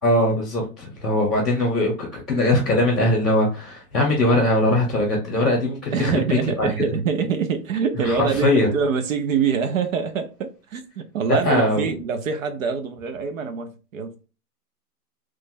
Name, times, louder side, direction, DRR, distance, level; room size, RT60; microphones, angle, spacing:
voice 1, 0.0-6.7 8.0-8.7 11.3-11.9, left 1 dB, ahead, 0.4 m, -21 dB
voice 2, 5.9-14.2, right 6 dB, 60° right, 0.6 m, -25 dB
3.1 x 2.1 x 3.5 m
hypercardioid pair, 150°, 46 cm